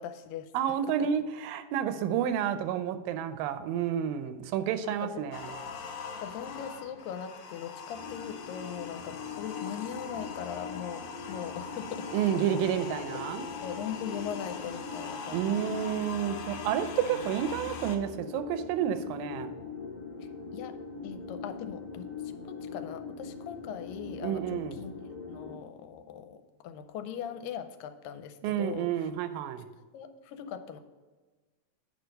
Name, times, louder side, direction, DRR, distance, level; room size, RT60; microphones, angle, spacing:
voice 1, 0.0-0.5 4.9-5.3 6.1-12.6 13.1-13.2 13.6-15.7 20.2-20.7 21.0-24.9 25.3-29.1 29.9-30.8, left 8 dB, 90° left, 9 dB, 2.3 m, -40 dB
voice 2, 0.5-5.5 12.1-13.5 15.3-19.5 24.2-24.8 28.4-29.6, right 9 dB, 85° right, 10 dB, 2.3 m, -30 dB
sound 1, 5.3-18.0, left 5 dB, 70° left, 1.7 m, -42 dB
sound 2, 7.9-25.6, left 5 dB, 25° left, 0.5 m, -42 dB
9.0 x 5.0 x 5.3 m, 1.3 s
omnidirectional pair, 4.0 m